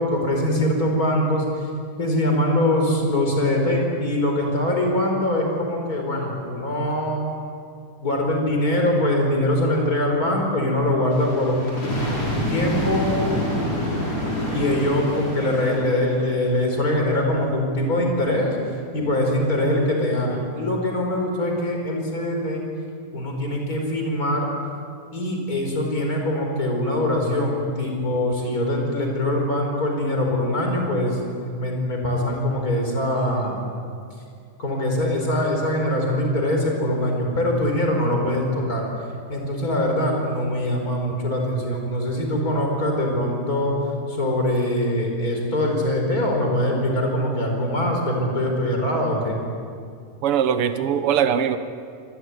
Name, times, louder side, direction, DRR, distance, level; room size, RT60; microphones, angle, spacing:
voice 1, 0.0-1.7 2.0-7.2 8.0-13.1 14.5-18.6 18.9-22.6 23.1-24.5 25.1-33.6 34.6-38.8 39.3-43.8 44.1-49.3, left 1 dB, 30° left, 1 dB, 5.0 m, -23 dB
sound 1, 11.1-16.5 17.1-17.3, left 1 dB, 55° left, 5.8 m, -27 dB
voice 2, 50.2-51.6, right 8 dB, 60° right, 10 dB, 1.8 m, -21 dB
25.0 x 20.0 x 9.5 m, 2.3 s
omnidirectional pair, 3.4 m